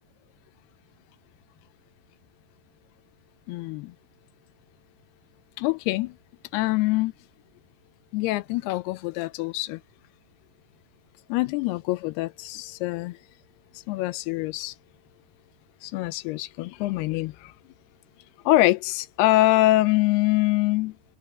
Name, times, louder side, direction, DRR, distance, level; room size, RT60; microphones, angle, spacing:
voice 1, 3.5-3.9 5.6-6.2 6.5-7.1 8.1-9.8 11.3-13.2 13.9-14.7 15.8-17.5 18.5-21.0, left 18 dB, 80° left, 2.4 m, -24 dB
omnidirectional pair, 5.1 m